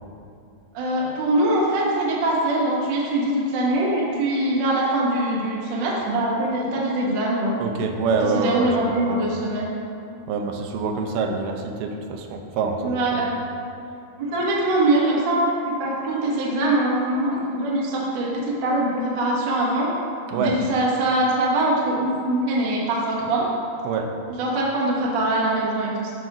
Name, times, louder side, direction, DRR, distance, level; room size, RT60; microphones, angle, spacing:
voice 1, 0.7-7.5 8.4-9.7 12.8-13.3 14.2-19.9 20.4-23.5 24.4-26.1, right 1 dB, 70° right, -5 dB, 1.0 m, -23 dB
voice 2, 7.6-9.3 10.3-13.3 20.3-20.6 23.8-24.1, right 4 dB, 90° right, 4 dB, 2.6 m, -26 dB
13.5 x 5.0 x 3.0 m, 2.6 s
omnidirectional pair, 4.3 m